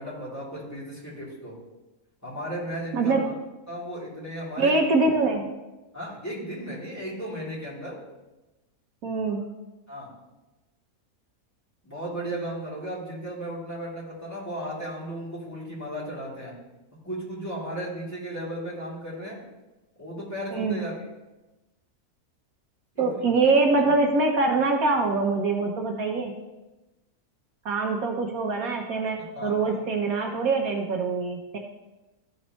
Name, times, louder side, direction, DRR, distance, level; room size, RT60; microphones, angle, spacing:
voice 1, 0.0-1.5 2.2-3.1 3.7-4.8 5.9-8.0 9.9-10.1 11.8-16.5 17.0-19.4 20.0-20.9 22.9-23.2 29.3-29.8, right 1 dB, 10° left, -8 dB, 2.8 m, -35 dB
voice 2, 2.9-3.3 4.6-5.5 9.0-9.4 20.5-20.8 23.0-26.3 27.6-31.6, right 3 dB, 70° right, 2 dB, 1.3 m, -24 dB
13.5 x 5.3 x 3.0 m, 1.1 s
omnidirectional pair, 1.6 m